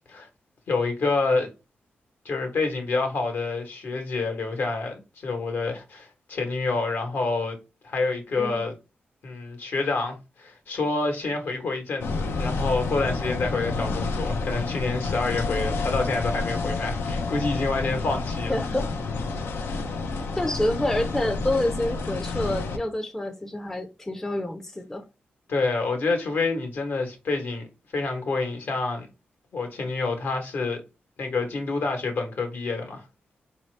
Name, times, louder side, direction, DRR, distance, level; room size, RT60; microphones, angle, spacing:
voice 1, 0.7-1.5 2.2-7.6 7.8-8.7 9.2-18.7 19.6-19.9 25.5-27.7 27.9-29.1 29.5-30.8 31.2-33.1, left 3 dB, 70° left, 1.2 m, -28 dB
sound 1, 12.0-22.8, left 3 dB, 85° left, 0.6 m, -29 dB
voice 2, 18.5-18.9 20.3-25.1, left 1 dB, 10° left, 0.5 m, -28 dB
4.1 x 2.7 x 3.2 m
wide cardioid pair, 100°, 4 cm